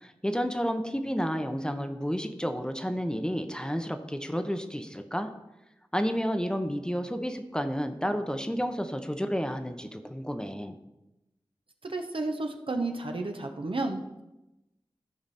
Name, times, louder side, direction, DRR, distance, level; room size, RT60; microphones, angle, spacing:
voice 1, 0.0-5.3 5.9-10.7, equal, 10° left, 6 dB, 0.9 m, -31 dB
voice 2, 11.8-14.2, right 2 dB, 65° right, 4 dB, 1.1 m, -32 dB
14.0 x 4.8 x 4.3 m, 0.96 s
cardioid pair, 40°, 10 cm